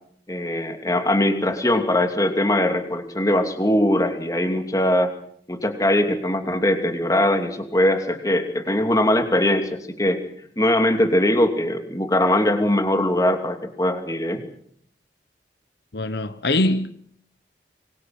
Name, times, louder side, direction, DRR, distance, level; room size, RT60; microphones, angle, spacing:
voice 1, 0.3-5.1 5.5-10.2 10.6-14.4, left 1 dB, 20° left, 2.8 m, -21 dB
voice 2, 15.9-16.9, left 2 dB, 70° left, 1.0 m, -22 dB
25.5 x 24.0 x 6.0 m
head